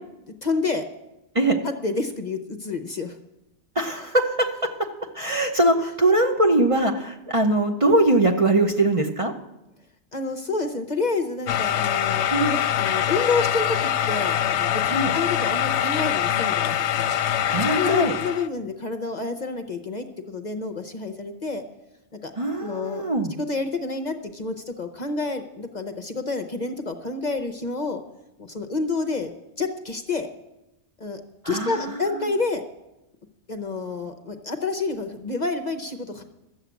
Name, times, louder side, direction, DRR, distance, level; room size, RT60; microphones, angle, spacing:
voice 1, 0.4-0.8 1.6-3.2 10.1-12.3 12.8-17.1 17.7-21.6 22.1-22.3 22.6-23.0 23.4-28.0 28.4-29.3 29.6-30.3 31.0-31.2 31.4-32.6 33.5-36.2, left 3 dB, 45° left, 7 dB, 0.8 m, -28 dB
voice 2, 3.7-4.7 5.1-9.3 12.3-12.6 14.9-15.1 17.5-18.2 22.4-23.3 31.4-32.3, right 1 dB, 30° right, 3 dB, 0.8 m, -22 dB
sound 1, 11.5-18.5, left 10 dB, 75° left, 0.9 m, -24 dB
12.5 x 7.3 x 8.2 m, 0.94 s
omnidirectional pair, 1.2 m